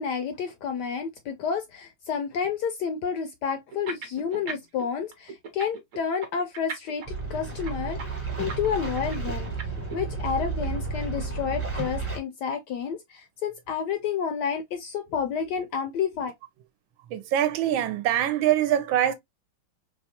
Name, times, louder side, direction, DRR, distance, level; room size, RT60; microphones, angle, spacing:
voice 1, 0.0-9.5 9.9-16.3, left 7 dB, 75° left, 1.0 m, -30 dB
sound 1, 3.7-4.8 5.1-10.0, right 4 dB, 55° right, 0.9 m, -37 dB
sound 2, 7.1-12.2, right 4 dB, 10° right, 0.7 m, -32 dB
voice 2, 17.1-19.1, right 11 dB, 80° right, 1.3 m, -23 dB
4.1 x 2.3 x 2.7 m
omnidirectional pair, 2.2 m